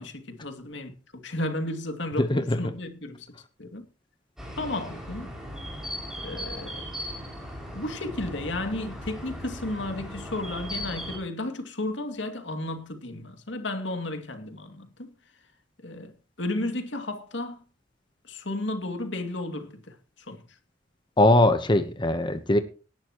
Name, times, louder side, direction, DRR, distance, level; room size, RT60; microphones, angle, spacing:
voice 1, 0.0-3.3 3.6-3.8 4.6-5.3 6.2-6.8 7.7-15.1 15.8-17.6 18.2-20.4, left 2 dB, 75° left, 2.5 m, -33 dB
voice 2, 2.2-2.7 21.2-22.6, left 1 dB, 25° left, 1.0 m, -21 dB
sound 1, 4.4-11.2, equal, 5° right, 6.3 m, -37 dB
18.5 x 11.5 x 3.1 m
head